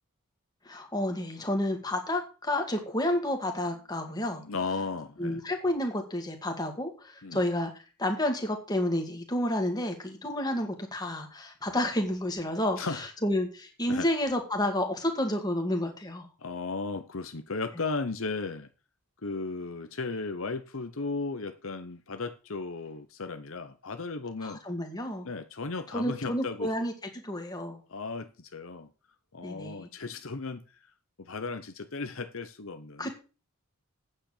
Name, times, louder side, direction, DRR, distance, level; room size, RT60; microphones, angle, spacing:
voice 1, 0.7-4.4 5.2-7.7 8.0-12.8 13.2-16.3 24.4-25.3 25.9-26.9 27.2-27.8 29.4-29.9 33.0-33.1, left 1 dB, 20° left, 2.2 m, -30 dB
voice 2, 4.2-5.4 7.2-7.4 12.8-13.1 13.9-14.1 16.4-18.7 19.2-24.6 25.2-26.8 27.9-28.9 29.3-30.9 31.2-33.1, left 3 dB, 60° left, 0.9 m, -35 dB
9.0 x 7.8 x 6.8 m
head